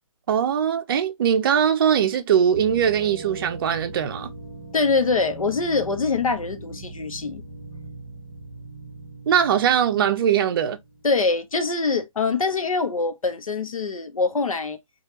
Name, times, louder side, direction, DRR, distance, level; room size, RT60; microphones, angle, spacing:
voice 1, 0.3-4.3 9.3-10.8, right 8 dB, 45° right, 0.5 m, -21 dB
Foggy Bell, 2.5-11.2, right 2 dB, 20° right, 0.9 m, -40 dB
voice 2, 4.7-7.4 11.0-14.8, left 4 dB, 90° left, 0.7 m, -24 dB
3.2 x 2.3 x 2.8 m
hypercardioid pair, 145°, 17 cm